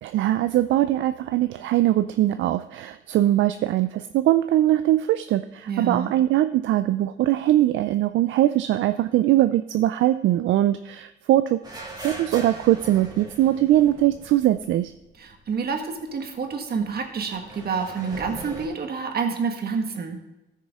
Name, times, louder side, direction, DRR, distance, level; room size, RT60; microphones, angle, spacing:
voice 1, 0.0-11.6 12.0-14.9, right 13 dB, 75° right, 11 dB, 0.4 m, -21 dB
voice 2, 5.7-6.1 15.2-20.2, right 5 dB, 50° right, 4 dB, 1.6 m, -28 dB
sound 1, 11.6-15.4 15.7-15.8 16.8-18.7, right 2 dB, 20° right, 2.1 m, -40 dB
14.0 x 6.6 x 3.6 m, 1.0 s
cardioid pair, 90°, 20 cm